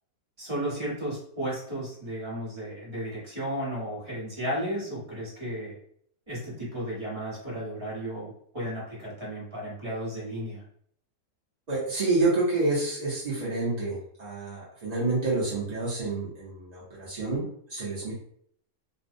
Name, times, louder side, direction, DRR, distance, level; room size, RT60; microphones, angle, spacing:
voice 1, 0.4-5.8 6.3-10.6, equal, 20° right, -6 dB, 0.9 m, -34 dB
voice 2, 11.7-18.1, right 3 dB, 60° right, -7 dB, 0.4 m, -28 dB
2.5 x 2.0 x 2.5 m, 0.64 s
omnidirectional pair, 1.6 m